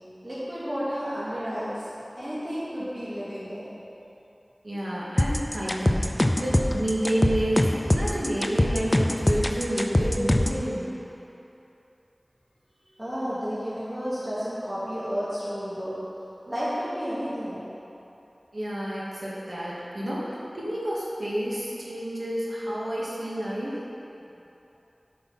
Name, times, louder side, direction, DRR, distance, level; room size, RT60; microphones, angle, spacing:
voice 1, 0.2-1.9 2.2-3.8 12.9-16.0 16.5-17.7, equal, 25° right, -10 dB, 2.3 m, -32 dB
voice 2, 4.6-6.0 6.4-10.9 18.5-23.8, right 1 dB, 60° right, -7 dB, 2.4 m, -29 dB
sound 1, 5.2-10.6, left 1 dB, 30° left, 0.6 m, -23 dB
9.8 x 5.6 x 5.9 m, 3.0 s
wide cardioid pair, 50°, 0 cm